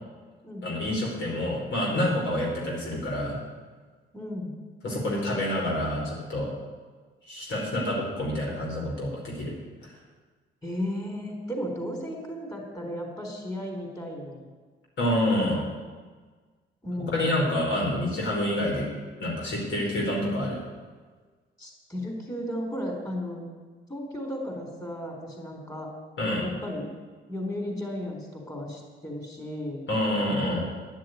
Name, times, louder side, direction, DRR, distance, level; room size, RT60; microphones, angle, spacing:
voice 1, 0.6-3.4 4.8-6.5 7.3-9.5 9.8-9.9 15.0-15.6 17.1-18.9 19.2-20.6 26.2-26.4 29.9-30.7, left 1 dB, 70° left, -2 dB, 4.9 m, -27 dB
voice 2, 4.1-4.5 10.6-14.5 16.8-17.3 21.6-23.4 23.9-25.9 26.4-26.9 27.3-29.8, equal, 15° left, 2 dB, 4.0 m, -34 dB
11.5 x 7.6 x 9.4 m, 1.4 s
cardioid pair, 90°, 20 cm